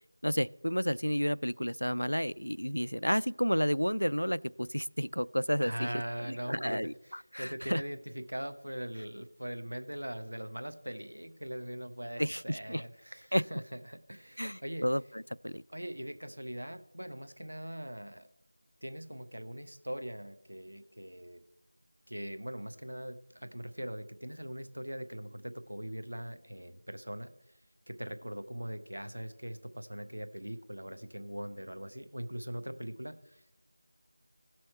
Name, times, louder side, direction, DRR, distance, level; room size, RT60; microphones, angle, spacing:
voice 1, 0.2-5.9 6.3-7.8 12.2-12.8 13.3-13.4 14.4-15.0 15.4-15.6, equal, 85° left, 20 dB, 0.3 m, -31 dB
voice 2, 5.6-14.9 15.7-18.3 18.8-21.4 22.1-27.3 27.9-33.6, equal, 65° right, 10 dB, 1.2 m, -41 dB
16.5 x 6.2 x 4.4 m, 0.87 s
figure-of-eight pair, 170°, 0 cm